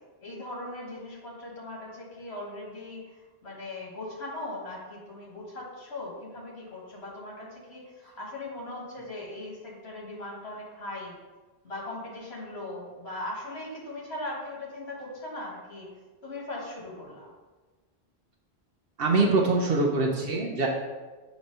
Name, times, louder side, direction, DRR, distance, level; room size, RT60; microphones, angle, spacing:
voice 1, 0.2-11.2 11.6-15.9 16.2-17.3, left 2 dB, 80° left, -4 dB, 1.9 m, -39 dB
voice 2, 19.0-20.7, right 3 dB, 65° right, 0 dB, 0.9 m, -24 dB
6.2 x 3.0 x 5.3 m, 1.3 s
omnidirectional pair, 1.1 m